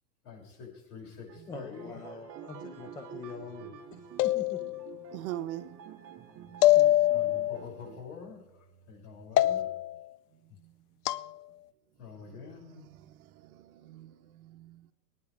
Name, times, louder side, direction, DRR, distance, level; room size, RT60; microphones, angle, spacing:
voice 1, 0.2-2.0 7.1-9.7 12.0-12.9, left 5 dB, 45° left, -2 dB, 6.9 m, -47 dB
sound 1, 1.3-8.0, right 8 dB, 30° right, 1.7 m, -48 dB
voice 2, 1.5-4.8 6.8-7.1, left 4 dB, 10° left, 5 dB, 0.4 m, -45 dB
sound 2, 4.2-5.0 6.6-7.6 9.4-10.0 11.1-11.3, left 14 dB, 70° left, 0.7 m, -24 dB
voice 3, 5.1-5.7 10.4-11.2 12.2-14.9, right 13 dB, 60° right, 11 dB, 1.1 m, -43 dB
26.0 x 9.8 x 3.5 m, 0.91 s
hypercardioid pair, 135°, 49 cm